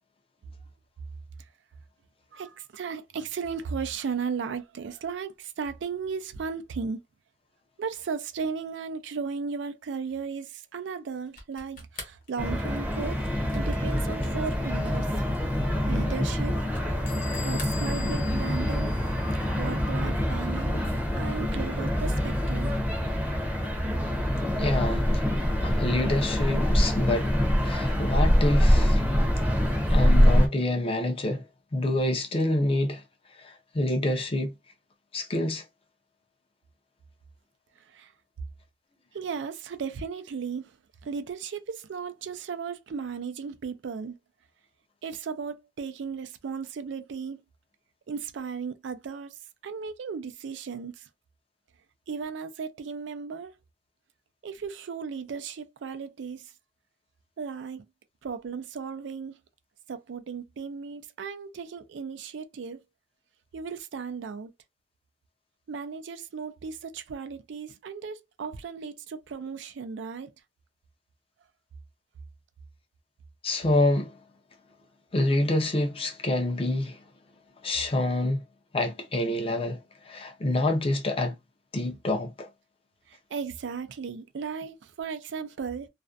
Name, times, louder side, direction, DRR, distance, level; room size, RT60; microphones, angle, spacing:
voice 1, 2.3-7.0 7.8-13.2 13.5-15.1 15.6-16.5 17.4-18.9 19.5-20.8 21.1-22.8 37.8-38.1 39.1-40.7 41.0-44.2 45.0-47.4 48.1-49.4 49.6-51.1 52.1-53.5 54.4-56.5 57.4-57.9 58.2-59.4 59.9-62.8 63.5-64.5 65.7-70.3 83.1-85.9, right 5 dB, 75° right, 0.4 m, -35 dB
sound 1, 11.3-17.2 17.5-18.5, left 3 dB, 45° left, 1.1 m, -46 dB
sound 2, 12.4-30.5, equal, 10° right, 0.6 m, -25 dB
Bell / Squeak, 17.1-19.6, left 7 dB, 85° left, 0.8 m, -43 dB
voice 2, 24.6-25.2 25.6-27.3 27.6-29.0 29.9-31.4 31.7-33.0 33.4-34.5 35.1-35.6 73.4-74.2 75.1-77.0 77.6-78.4 78.7-81.4 81.7-82.5, left 1 dB, 30° left, 0.5 m, -27 dB
2.4 x 2.1 x 2.4 m
head